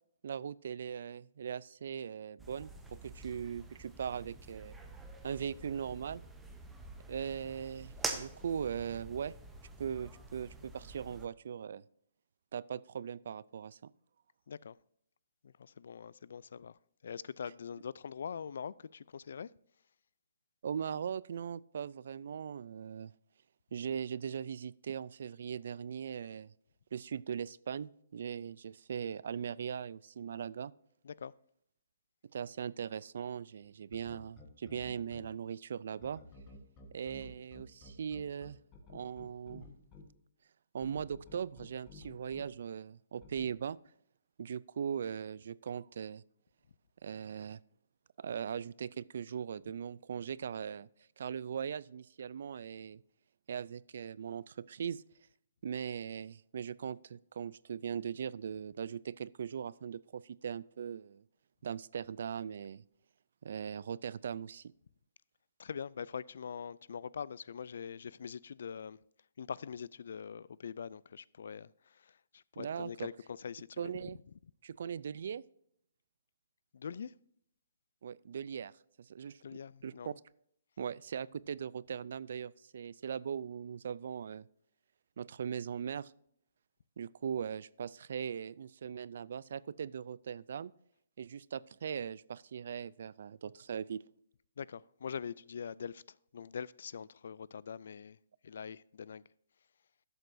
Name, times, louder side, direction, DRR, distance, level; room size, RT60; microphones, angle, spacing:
voice 1, 0.2-4.7 5.2-6.2 7.1-9.3 9.8-11.8 12.5-13.9 20.6-23.1 23.7-26.5 26.9-30.7 32.2-36.2 36.9-38.6 38.9-39.7 40.7-43.8 44.4-46.2 47.0-47.6 48.2-50.9 51.2-53.0 53.5-55.0 55.6-61.2 61.6-62.8 63.4-64.7 72.6-73.1 73.8-74.2 74.6-75.4 78.0-78.7 79.0-79.4 79.8-80.1 80.8-84.5 85.2-86.1 87.0-90.7 91.2-94.0, right 7 dB, 55° right, 0.3 m, -40 dB
sound 1, 2.4-11.3, right 3 dB, 5° right, 0.7 m, -46 dB
voice 2, 15.4-16.8 17.0-19.5 31.0-31.3 65.6-69.0 69.4-73.9 76.7-77.1 79.4-80.1 94.6-98.2 98.4-99.2, left 7 dB, 60° left, 0.3 m, -43 dB
sound 2, 33.9-35.2 36.0-40.0 40.8-42.4 43.2-43.5, left 3 dB, 20° left, 1.3 m, -53 dB
12.0 x 7.9 x 2.6 m
hypercardioid pair, 170°, 0 cm